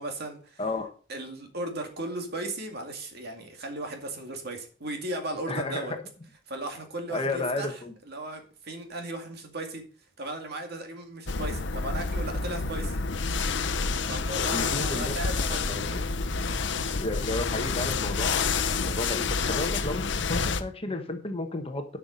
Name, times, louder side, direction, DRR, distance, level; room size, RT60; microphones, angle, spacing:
voice 1, 0.0-0.6 1.1-5.9 6.5-7.8 8.1-9.8 10.2-13.0 14.1-15.7, right 1 dB, 50° right, 4 dB, 2.3 m, -36 dB
voice 2, 0.6-0.9 5.5-6.0 7.1-7.9 14.5-15.1 15.4-16.0 17.0-22.0, left 2 dB, 30° left, 6 dB, 1.2 m, -33 dB
roce de telas sinteticas, 11.3-20.6, left 4 dB, 60° left, 0.8 m, -28 dB
11.5 x 5.8 x 5.2 m, 0.41 s
head